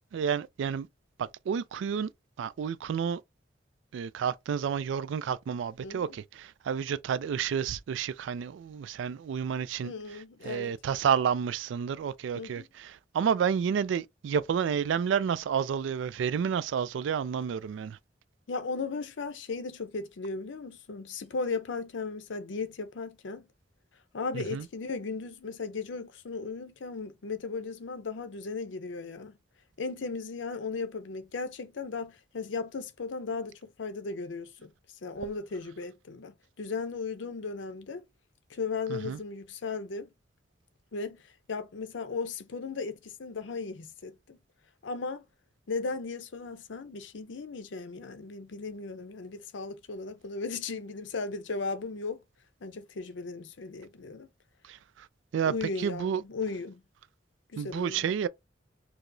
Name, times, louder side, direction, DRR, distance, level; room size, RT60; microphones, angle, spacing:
voice 1, 0.1-0.9 1.2-2.1 2.4-3.2 3.9-9.9 10.4-18.0 24.3-24.7 38.9-39.2 54.7-55.1 55.3-55.5 55.8-56.2 57.6-58.3, right 7 dB, 80° right, 0.3 m, -30 dB
voice 2, 5.8-6.2 9.8-10.7 12.3-12.6 18.5-23.5 24.1-29.4 29.8-34.7 35.0-38.0 38.5-40.1 40.9-41.2 41.5-44.4 44.8-45.2 45.7-52.2 52.6-54.3 55.4-56.8 57.5-58.1, left 4 dB, 80° left, 0.6 m, -36 dB
4.6 x 2.0 x 2.6 m
head